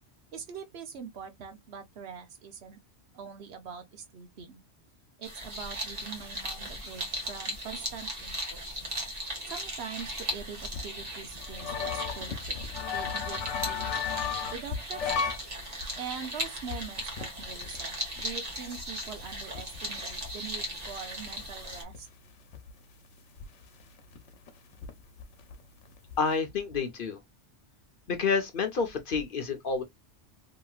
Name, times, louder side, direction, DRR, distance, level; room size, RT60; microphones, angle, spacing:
voice 1, 0.3-2.8 3.1-4.6 5.2-8.6 9.5-12.6 12.9-14.0 14.5-15.2 16.0-22.1, right 7 dB, 70° right, 1.0 m, -43 dB
sound 1, 5.2-21.8, equal, 35° right, 1.1 m, -38 dB
sound 2, 10.7-15.4 15.8-15.9 16.4-17.8 18.2-18.3 18.8-18.9 19.1-20.6 21.1-21.2 21.4-22.0 22.5-22.7 23.4-23.5 23.8-24.9 25.2-25.5 25.8-26.3, left 7 dB, 90° left, 1.1 m, -34 dB
voice 2, 26.2-27.2 28.1-29.8, left 5 dB, 55° left, 0.8 m, -29 dB
2.9 x 2.8 x 2.3 m
omnidirectional pair, 1.2 m